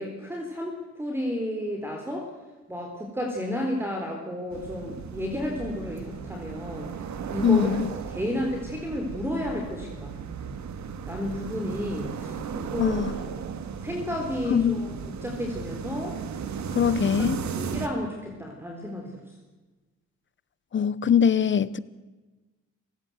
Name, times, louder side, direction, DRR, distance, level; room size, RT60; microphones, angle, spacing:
voice 1, 0.0-2.3 2.7-6.9 7.3-7.8 8.1-10.1 11.1-13.0 13.8-14.9 15.2-16.2 17.6-19.1, left 1 dB, 10° right, 4.0 m, -32 dB
sound 1, 4.5-17.9, right 6 dB, 65° right, 2.1 m, -35 dB
voice 2, 7.4-7.9 12.8-13.2 14.5-14.9 16.7-17.4 20.7-21.8, left 7 dB, 40° left, 1.0 m, -22 dB
27.5 x 16.0 x 8.0 m
cardioid pair, 90°, 30 cm